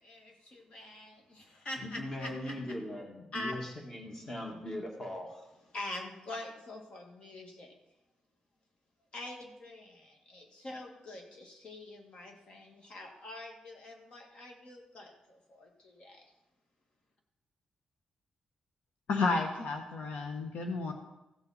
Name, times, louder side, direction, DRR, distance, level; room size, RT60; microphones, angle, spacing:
voice 1, 0.0-2.6 3.3-3.6 5.7-7.7 9.1-16.2, left 2 dB, 50° left, 2 dB, 2.0 m, -45 dB
voice 2, 1.8-5.4, left 1 dB, 20° left, 0 dB, 1.8 m, -40 dB
voice 3, 19.1-20.9, left 3 dB, 75° left, 2 dB, 1.3 m, -31 dB
15.0 x 7.1 x 4.2 m, 0.95 s
wide cardioid pair, 160°, 2 cm